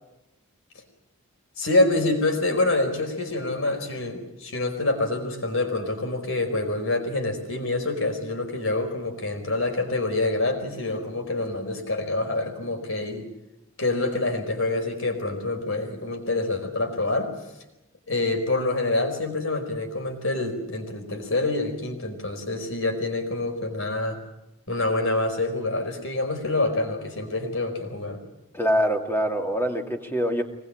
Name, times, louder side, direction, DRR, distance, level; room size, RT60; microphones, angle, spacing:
voice 1, 1.6-13.3 13.8-17.3 18.1-24.2 24.7-28.2, left 2 dB, 60° left, 6 dB, 4.7 m, -26 dB
voice 2, 28.5-30.4, equal, 10° left, 3 dB, 2.2 m, -24 dB
24.5 x 20.0 x 8.8 m, 0.91 s
head